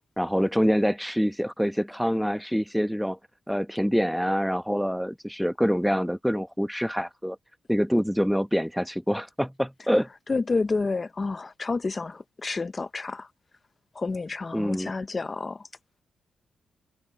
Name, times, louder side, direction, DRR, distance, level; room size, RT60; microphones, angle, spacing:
voice 1, 0.2-3.2 3.5-7.4 7.7-10.1 14.5-14.9, equal, ahead, 1.0 m, -25 dB
voice 2, 10.3-13.3 14.0-15.6, left 3 dB, 30° left, 0.7 m, -29 dB
cardioid pair, 90°, 0 cm